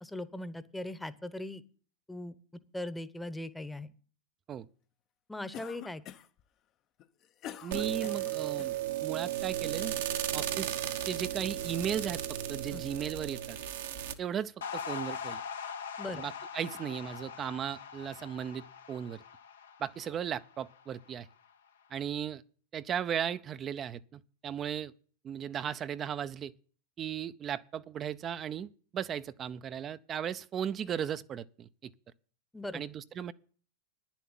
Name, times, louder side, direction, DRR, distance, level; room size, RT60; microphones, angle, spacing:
voice 1, 0.0-1.6 2.1-2.3 2.7-3.9 5.3-6.0 12.7-12.8 16.0-16.2 32.5-32.8, left 1 dB, 5° left, 1.0 m, -39 dB
Cough, 5.5-6.4 7.0-8.8, left 10 dB, 40° left, 0.7 m, -46 dB
voice 2, 7.6-10.0 10.3-10.8 11.0-12.2 12.5-13.6 14.2-15.4 16.1-19.2 19.8-21.3 21.9-22.4 22.7-24.9 25.2-26.5 27.0-31.9 32.7-33.3, right 9 dB, 30° right, 0.5 m, -36 dB
sound 1, 7.7-14.1, right 12 dB, 70° right, 1.2 m, -35 dB
sound 2, 14.6-21.1, left 6 dB, 80° left, 1.0 m, -42 dB
10.0 x 7.2 x 9.0 m
hypercardioid pair, 95°, 0 cm